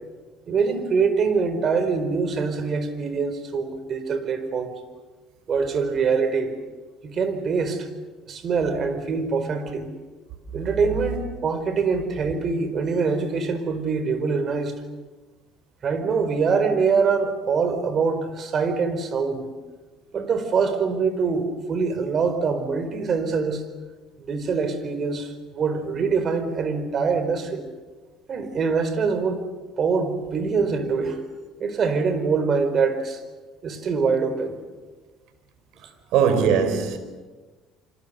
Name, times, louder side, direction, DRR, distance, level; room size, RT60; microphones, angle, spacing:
voice 1, 0.5-4.7 5.5-6.5 7.0-7.9 8.2-9.9 10.5-14.8 15.8-19.5 20.1-23.7 24.2-27.6 28.3-29.4 29.8-31.2 31.6-33.2 33.6-34.6, right 5 dB, 45° right, 4.6 m, -24 dB
voice 2, 36.1-37.0, right 7 dB, 75° right, 4.5 m, -20 dB
27.5 x 26.0 x 7.0 m
supercardioid pair, 80°, 0 cm